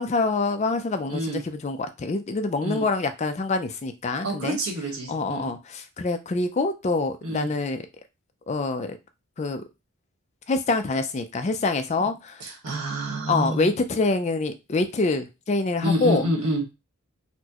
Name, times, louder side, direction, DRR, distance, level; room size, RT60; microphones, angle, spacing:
voice 1, 0.0-4.6 5.1-7.8 8.5-9.0 9.4-9.6 10.5-12.5 13.3-16.2, left 3 dB, 30° left, 8 dB, 0.3 m, -26 dB
voice 2, 4.2-5.5 7.2-7.5 12.0-12.1 12.4-13.7 15.8-16.7, equal, 90° right, -2 dB, 1.3 m, -28 dB
4.2 x 2.0 x 2.8 m, 0.26 s
head